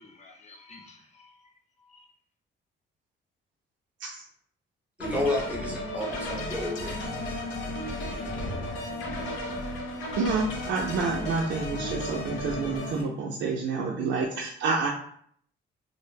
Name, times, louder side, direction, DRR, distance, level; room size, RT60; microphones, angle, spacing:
voice 1, 0.0-2.1, left 3 dB, 35° left, 2 dB, 0.5 m, -53 dB
sound 1, 5.0-13.0, left 1 dB, 90° left, 0.6 m, -34 dB
voice 2, 5.0-6.9, left 1 dB, 5° right, -3 dB, 0.7 m, -30 dB
sound 2, 6.6-9.4, left 1 dB, 70° left, 1.0 m, -41 dB
voice 3, 10.2-14.9, right 4 dB, 70° right, -2 dB, 0.4 m, -28 dB
2.1 x 2.0 x 3.2 m, 0.63 s
cardioid pair, 90°, 20 cm